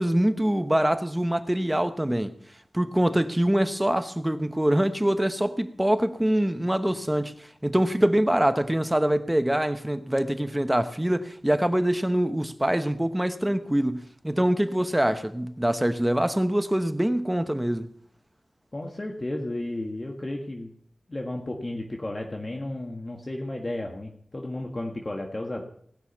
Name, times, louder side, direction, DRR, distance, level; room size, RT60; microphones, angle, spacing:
voice 1, 0.0-2.3 2.7-17.9, right 1 dB, 10° right, 0.9 m, -24 dB
voice 2, 18.7-20.7 21.1-25.6, left 1 dB, 35° left, 1.6 m, -33 dB
18.5 x 6.2 x 7.1 m
wide cardioid pair, 65°, 0 cm